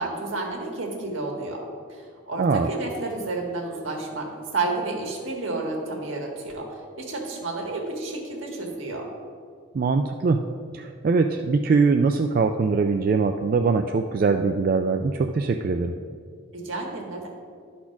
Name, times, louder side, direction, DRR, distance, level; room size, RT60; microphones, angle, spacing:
voice 1, 0.0-1.6 1.9-9.1 16.5-17.3, right 3 dB, 75° right, 0 dB, 1.7 m, -31 dB
voice 2, 2.4-2.7 9.7-10.4 10.7-15.9, right 4 dB, 45° right, 5 dB, 0.3 m, -22 dB
11.5 x 4.3 x 5.9 m, 2.1 s
head